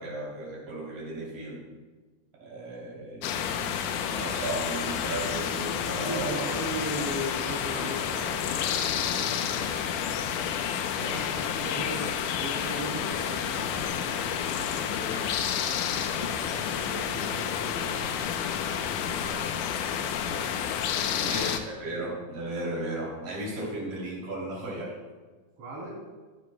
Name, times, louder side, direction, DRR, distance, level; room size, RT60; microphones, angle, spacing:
voice 1, 0.0-1.6 2.4-3.8 4.1-6.5 11.0-11.3 21.2-25.0, right 1 dB, 90° right, -5 dB, 4.7 m, -35 dB
sound 1, 3.2-21.6, left 8 dB, 85° left, 2.2 m, -30 dB
voice 2, 6.1-9.7 10.1-10.3 10.9-12.0 12.4-15.3 15.7-19.5 20.2-20.5 21.1-21.4 21.8-22.0 25.6-26.0, right 1 dB, 50° right, -4 dB, 4.1 m, -39 dB
17.5 x 10.5 x 2.2 m, 1.3 s
omnidirectional pair, 3.7 m